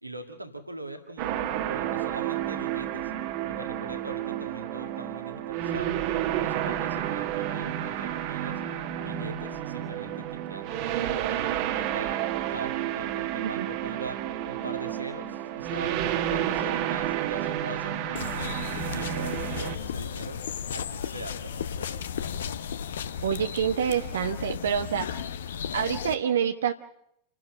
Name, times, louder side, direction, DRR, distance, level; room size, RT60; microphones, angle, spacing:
voice 1, 0.0-3.1 3.4-6.0 6.3-8.6 9.0-12.2 12.5-18.6 18.9-20.4 20.7-22.2, right 2 dB, 85° right, 5 dB, 2.0 m, -41 dB
sound 1, 1.2-19.8, right 11 dB, 45° right, 1.6 m, -30 dB
sound 2, 18.2-26.2, left 8 dB, 65° left, 0.9 m, -34 dB
voice 2, 23.2-25.1 25.7-26.7, right 8 dB, 65° right, 7 dB, 0.8 m, -27 dB
28.5 x 12.0 x 7.8 m, 0.75 s
figure-of-eight pair, 90°, 0 cm